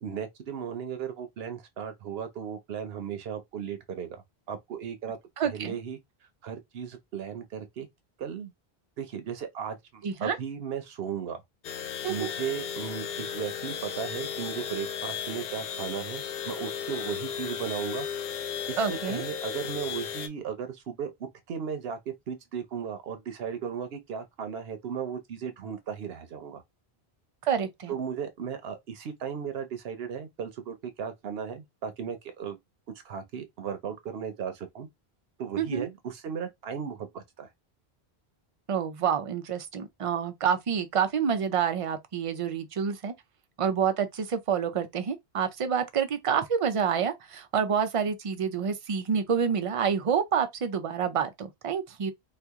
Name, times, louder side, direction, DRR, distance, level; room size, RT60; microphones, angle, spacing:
voice 1, 0.0-5.2 5.4-6.0 6.4-7.9 8.2-8.5 9.0-11.4 12.1-18.1 18.7-21.1 21.5-26.6 27.9-32.6 33.0-34.9 35.4-37.5, right 7 dB, 70° right, 1.0 m, -36 dB
voice 2, 5.4-5.8 10.0-10.4 12.0-12.3 18.8-19.2 27.4-27.9 35.6-35.9 38.7-43.1 43.6-52.1, right 7 dB, 45° right, 0.4 m, -28 dB
sound 1, 11.6-20.3, left 8 dB, 70° left, 0.7 m, -35 dB
2.9 x 2.4 x 3.5 m
omnidirectional pair, 1.1 m